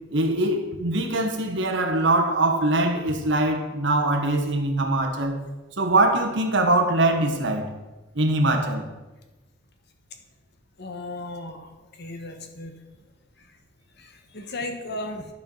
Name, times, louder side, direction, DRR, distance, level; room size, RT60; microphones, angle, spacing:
voice 1, 0.1-5.4 5.8-7.7 8.1-8.9, right 2 dB, 65° right, 1.3 m, -22 dB
voice 2, 10.8-11.7 12.0-12.7 14.0-15.3, left 2 dB, 60° left, 1.2 m, -35 dB
11.5 x 4.6 x 5.5 m
head